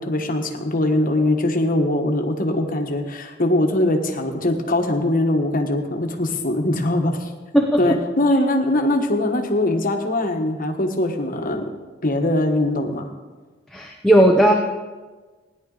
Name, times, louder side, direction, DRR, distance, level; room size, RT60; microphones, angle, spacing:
voice 1, 0.0-7.3 7.8-11.6 12.0-13.1, left 1 dB, 45° left, 4 dB, 1.3 m, -21 dB
voice 2, 7.5-7.9 13.7-14.5, equal, ahead, 0 dB, 0.8 m, -16 dB
17.0 x 10.5 x 3.9 m, 1.3 s
head